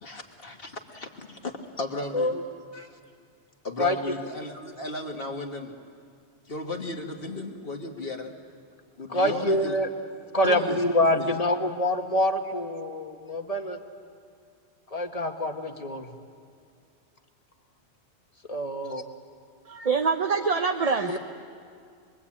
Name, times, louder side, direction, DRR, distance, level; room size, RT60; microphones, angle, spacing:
voice 1, 0.0-1.5 1.8-2.3 2.7-3.0 3.6-5.7 6.5-8.3 9.0-9.8 10.4-10.8 11.1-11.3, left 2 dB, 55° left, 2 dB, 1.9 m, -35 dB
voice 2, 3.8-4.1 9.1-9.9 10.3-13.8 14.9-16.1 18.4-19.0 21.1-21.2, left 1 dB, 35° left, 4 dB, 1.5 m, -26 dB
voice 3, 19.7-21.2, right 5 dB, 35° right, 5 dB, 0.8 m, -25 dB
26.5 x 22.0 x 8.6 m, 2.2 s
omnidirectional pair, 1.2 m